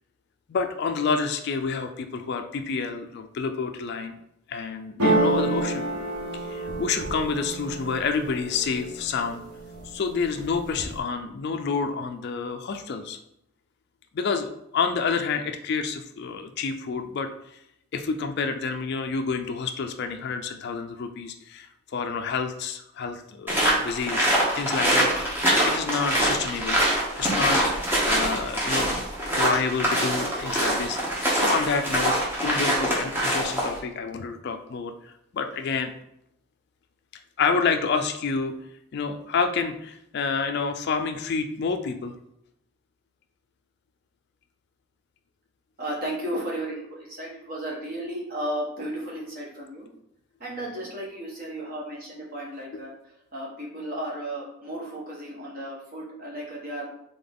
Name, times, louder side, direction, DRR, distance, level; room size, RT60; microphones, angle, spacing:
voice 1, 0.5-4.1 4.5-5.9 6.3-9.4 9.8-13.2 14.1-17.6 17.9-24.3 24.5-26.8 27.2-29.0 29.4-31.0 31.3-35.9 37.4-38.5 38.9-42.1 52.7-52.8, left 5 dB, 50° left, 7 dB, 0.3 m, -28 dB
sound 1, 5.0-8.9 9.3-9.9 10.2-11.0, right 2 dB, 90° right, 1.1 m, -27 dB
sound 2, 23.5-33.8, right 1 dB, 10° right, 0.9 m, -24 dB
voice 2, 45.8-49.9 50.4-52.9 53.3-56.9, right 1 dB, 40° right, -3 dB, 1.2 m, -34 dB
3.9 x 3.7 x 3.5 m, 0.79 s
head